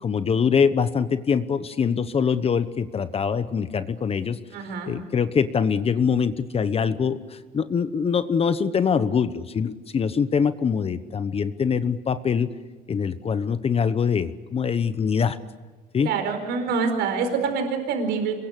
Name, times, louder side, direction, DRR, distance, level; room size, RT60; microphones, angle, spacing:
voice 1, 0.0-4.4 4.9-7.2 7.5-12.5 12.9-15.4 15.9-16.1, left 6 dB, 35° left, 12 dB, 1.1 m, -23 dB
voice 2, 4.5-4.9 16.0-18.3, right 5 dB, 85° right, 6 dB, 4.7 m, -26 dB
26.0 x 22.5 x 8.4 m, 1.3 s
cardioid pair, 110°, 17 cm